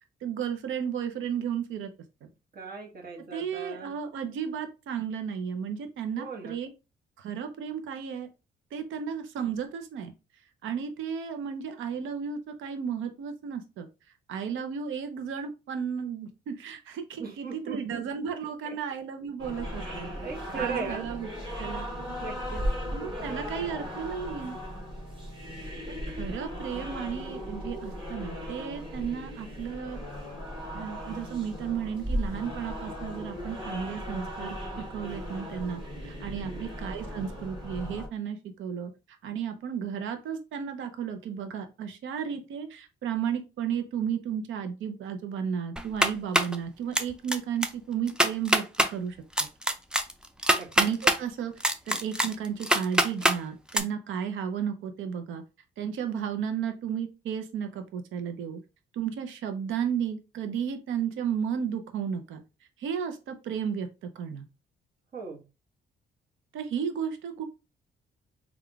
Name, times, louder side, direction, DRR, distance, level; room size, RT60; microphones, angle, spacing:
voice 1, 0.2-1.9 3.3-6.7 7.2-8.3 8.7-10.1 10.6-13.9 14.3-20.1 20.5-21.3 21.6-21.9 22.9-24.6 26.1-30.0 30.7-38.9 39.2-49.5 50.8-55.4 55.8-58.6 58.9-62.4 62.8-64.4 66.5-67.4, right 7 dB, 75° right, 7 dB, 0.7 m, -33 dB
voice 2, 2.5-3.9 6.2-6.6 17.2-18.0 18.6-18.8 20.1-21.1 22.2-22.6 36.4-36.8 50.5-50.7 65.1-65.4, right 5 dB, 50° right, 0 dB, 1.2 m, -38 dB
sound 1, 19.4-38.1, equal, 25° right, 1.8 m, -37 dB
sound 2, 45.8-46.6 46.9-47.4 47.6-47.7 48.1-48.9 49.4-51.2 51.6-53.4 53.7-53.8, right 1 dB, 5° right, 0.4 m, -23 dB
3.6 x 2.4 x 3.4 m, 0.29 s
cardioid pair, 90°, 20 cm